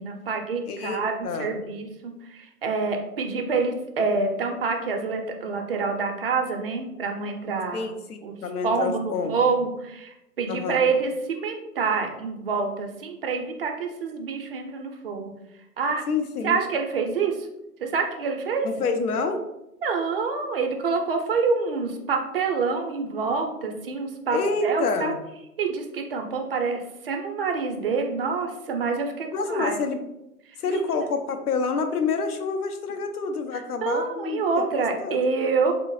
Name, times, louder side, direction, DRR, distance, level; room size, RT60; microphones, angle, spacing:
voice 1, 0.0-7.9 8.2-8.4 8.6-15.3 15.8-16.0 16.4-17.5 17.8-18.7 19.8-25.1 25.6-29.8 30.7-30.8 33.5-35.7, right 4 dB, 40° right, 3 dB, 0.5 m, -27 dB
voice 2, 0.7-1.6 7.7-9.4 10.5-10.9 16.1-16.6 18.6-19.4 24.3-25.1 29.3-30.0 30.6-35.3, left 4 dB, 80° left, 6 dB, 0.7 m, -28 dB
3.6 x 2.0 x 3.1 m, 0.87 s
hypercardioid pair, 140°, 45 cm